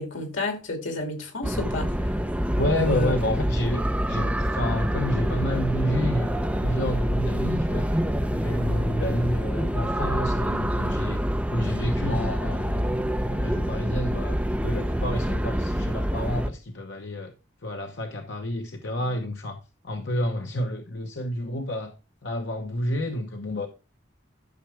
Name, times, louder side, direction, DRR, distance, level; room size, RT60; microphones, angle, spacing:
voice 1, 0.0-1.9 2.8-3.1, left 1 dB, 90° left, 2.7 m, -30 dB
sound 1, 1.4-16.5, equal, 5° right, 0.7 m, -26 dB
voice 2, 2.6-3.8 4.1-8.0 8.3-11.2 11.5-14.4 14.6-17.3 17.6-21.9 22.2-23.7, left 1 dB, 70° left, 1.0 m, -29 dB
12.0 x 6.0 x 3.4 m
head